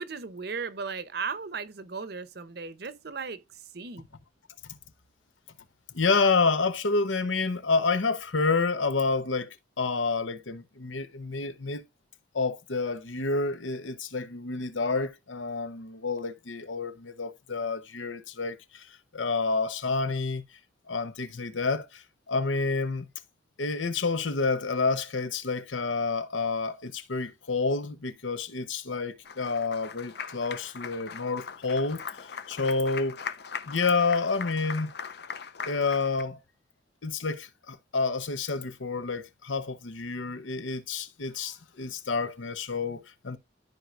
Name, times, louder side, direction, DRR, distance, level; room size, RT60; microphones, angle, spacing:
voice 1, 0.0-4.1, right 5 dB, 55° right, 0.7 m, -36 dB
voice 2, 5.9-11.8 12.3-20.4 20.9-23.1 23.6-33.2 33.7-34.9 35.7-36.4 37.0-43.4, left 4 dB, 90° left, 0.9 m, -29 dB
Applause, 29.3-36.2, left 6 dB, 60° left, 0.6 m, -40 dB
13.5 x 4.6 x 2.5 m
head